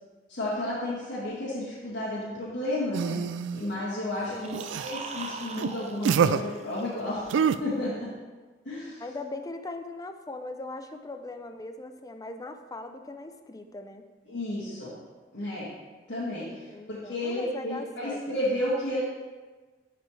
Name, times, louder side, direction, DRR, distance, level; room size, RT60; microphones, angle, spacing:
voice 1, 0.3-3.2 3.5-8.1 8.7-9.0 14.3-14.9 15.3-15.7 16.1-19.0, left 1 dB, 70° left, -10 dB, 2.1 m, -32 dB
sound 1, 2.9-3.6 4.5-4.9 5.6-5.7 6.0-6.4 7.3-7.6, right 7 dB, 90° right, 0.3 m, -25 dB
sound 2, 4.2-7.3, right 4 dB, 35° right, 0.6 m, -41 dB
voice 2, 4.3-4.9 9.0-14.0 16.7-18.2 18.5-18.7, left 2 dB, 20° left, 7 dB, 0.4 m, -40 dB
12.0 x 4.9 x 3.3 m, 1.3 s
head